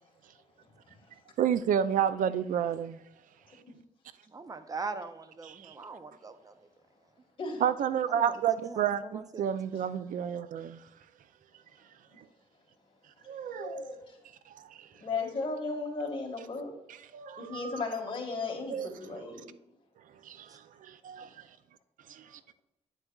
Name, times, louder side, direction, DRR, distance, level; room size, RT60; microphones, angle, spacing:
voice 1, 1.4-3.0 5.4-5.8 7.6-10.8 13.3-13.8 14.5-14.9 17.1-17.8 18.7-18.9 20.2-21.4 22.1-22.3, right 9 dB, 90° right, 0.4 m, -31 dB
voice 2, 4.3-6.7 8.1-9.5 18.7-18.8 20.5-20.6, right 4 dB, 25° right, 0.6 m, -41 dB
voice 3, 13.4-14.2 15.0-16.7 17.4-19.5 21.2-21.3, left 3 dB, 40° left, 1.8 m, -36 dB
8.8 x 8.0 x 2.3 m
wide cardioid pair, 125°, 13 cm